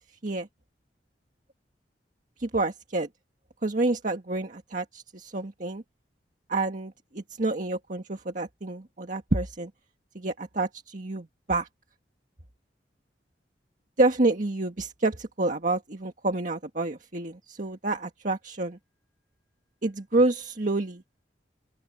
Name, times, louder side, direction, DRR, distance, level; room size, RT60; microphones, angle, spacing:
voice 1, 2.4-3.1 3.6-5.8 6.5-9.7 10.2-11.7 14.0-18.8 19.8-21.0, right 2 dB, 50° right, 1.6 m, -28 dB
open air
head